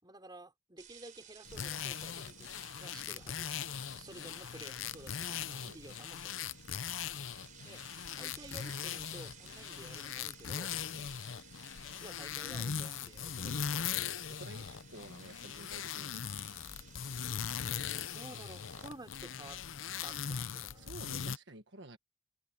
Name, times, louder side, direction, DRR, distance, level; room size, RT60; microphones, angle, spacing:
voice 1, 0.0-3.5 3.9-6.6 7.6-10.8 11.8-13.8 17.9-19.6 20.0-20.9, right 1 dB, 20° right, 4.4 m, -52 dB
sound 1, 0.8-18.9, right 9 dB, 45° right, 3.7 m, -57 dB
sound 2, 1.4-21.4, left 8 dB, 90° left, 0.7 m, -40 dB
voice 2, 14.3-16.2 20.0-22.0, right 2 dB, 65° right, 1.5 m, -52 dB
head